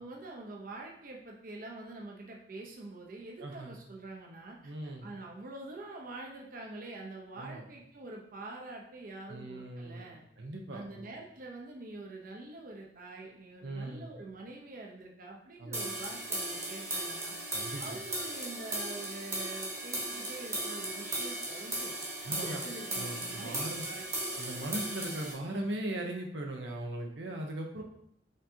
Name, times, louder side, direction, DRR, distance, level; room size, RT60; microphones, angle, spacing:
voice 1, 0.0-4.7 5.0-10.2 10.7-17.3 17.8-22.0 22.3-24.3, right 2 dB, 55° right, 0 dB, 0.7 m, -45 dB
voice 2, 3.4-3.7 4.6-5.1 7.4-7.6 9.3-11.1 13.6-14.1 15.6-15.9 17.5-18.0 22.2-22.6 23.0-23.8 24.4-27.8, right 1 dB, 80° right, 1 dB, 0.8 m, -39 dB
sound 1, 15.7-25.3, right 1 dB, 15° right, 1.1 m, -37 dB
5.3 x 3.6 x 2.7 m, 0.68 s
head